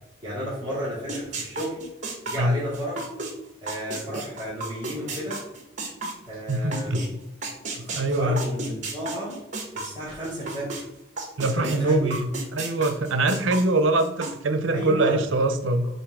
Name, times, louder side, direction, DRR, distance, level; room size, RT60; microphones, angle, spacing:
voice 1, 0.2-1.8 2.3-2.9 3.6-5.4 6.3-7.0 7.8-9.3 9.7-10.8 11.5-12.1 14.7-15.2, equal, 20° right, -9 dB, 2.2 m, -32 dB
sound 1, 1.1-7.1 7.4-10.8 11.2-14.3, right 3 dB, 40° right, 1.3 m, -33 dB
voice 2, 6.5-7.0 7.8-8.4 11.4-15.9, right 2 dB, 85° right, 8 dB, 0.7 m, -23 dB
7.3 x 2.7 x 5.0 m, 0.85 s
head